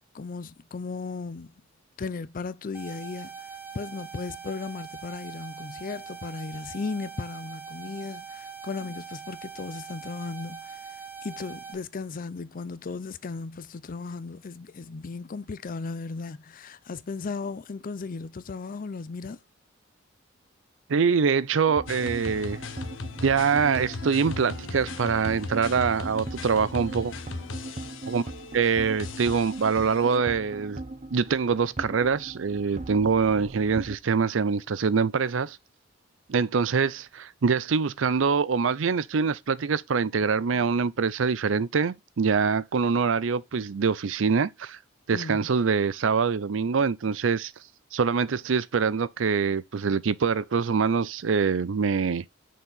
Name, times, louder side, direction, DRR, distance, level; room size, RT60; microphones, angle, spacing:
voice 1, 0.1-1.5 2.0-3.5 3.7-10.9 11.2-19.4 45.1-45.5, left 4 dB, 45° left, 0.5 m, -36 dB
sound 1, 2.7-11.7, right 6 dB, 10° right, 1.1 m, -42 dB
voice 2, 20.9-22.6 23.2-27.1 28.1-30.8 31.1-35.6 36.3-44.8 45.1-47.5 47.9-52.2, right 5 dB, 80° right, 0.5 m, -24 dB
sound 2, 21.7-34.0, right 2 dB, 40° right, 0.8 m, -40 dB
sound 3, 21.9-30.2, left 3 dB, 90° left, 1.0 m, -38 dB
6.1 x 4.6 x 4.0 m
head